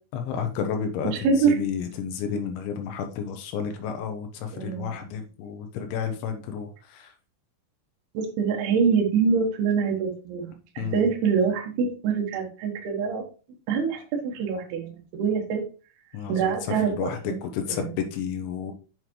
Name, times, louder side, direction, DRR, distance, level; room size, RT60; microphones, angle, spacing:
voice 1, 0.1-7.1 10.8-11.1 16.1-18.7, left 7 dB, 85° left, 6 dB, 3.1 m, -31 dB
voice 2, 1.1-1.6 4.5-5.2 8.1-13.2 13.7-15.6 16.3-17.4 17.7-18.1, right 5 dB, 70° right, 0 dB, 2.9 m, -25 dB
7.5 x 6.5 x 3.1 m, 0.35 s
omnidirectional pair, 5.4 m